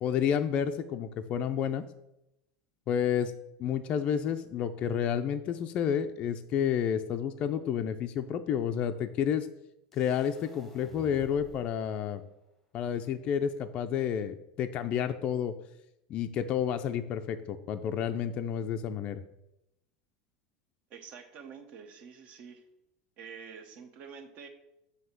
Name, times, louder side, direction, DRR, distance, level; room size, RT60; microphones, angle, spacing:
voice 1, 0.0-1.9 2.9-3.3 3.6-9.5 9.9-12.2 12.7-15.5 16.1-19.2, left 8 dB, 35° left, 7 dB, 0.4 m, -30 dB
sound 1, 9.9-11.9, left 1 dB, 5° left, 0.9 m, -51 dB
voice 2, 20.9-22.6 23.2-24.5, right 6 dB, 45° right, 7 dB, 0.9 m, -47 dB
7.7 x 2.8 x 5.8 m, 0.87 s
supercardioid pair, 145°, 3 cm